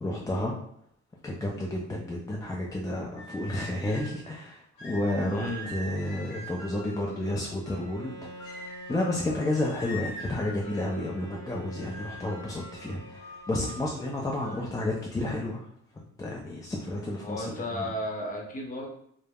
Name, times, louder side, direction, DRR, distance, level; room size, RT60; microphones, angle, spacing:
voice 1, 0.0-0.5 1.2-8.6 8.9-15.7 16.2-17.9, left 1 dB, 10° left, -3 dB, 0.3 m, -31 dB
sound 1, 3.2-4.2 4.8-7.9 8.4-11.1 11.8-14.6, equal, 85° left, 1.0 m, -44 dB
voice 2, 5.3-5.7 14.4-14.5 17.2-18.9, left 1 dB, 30° left, -1 dB, 0.8 m, -34 dB
Bowed string instrument, 7.7-14.0, right 1 dB, 60° right, 1.2 m, -47 dB
3.3 x 2.0 x 2.2 m, 0.70 s
cardioid pair, 90°, 30 cm